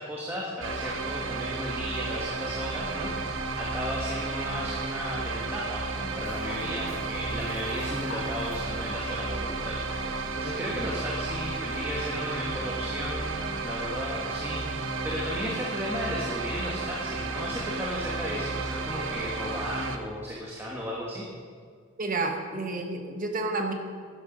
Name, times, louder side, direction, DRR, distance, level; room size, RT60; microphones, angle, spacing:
voice 1, 0.0-10.1 10.4-21.2, equal, 10° right, -4 dB, 1.4 m, -35 dB
sound 1, 0.6-20.0, right 3 dB, 65° right, 1.0 m, -33 dB
sound 2, 1.4-14.0, equal, 25° left, 1.2 m, -47 dB
sound 3, 6.2-12.1, left 2 dB, 65° left, 2.8 m, -46 dB
voice 2, 22.0-23.7, right 3 dB, 40° right, 4 dB, 1.3 m, -30 dB
12.0 x 11.0 x 5.1 m, 2.1 s
head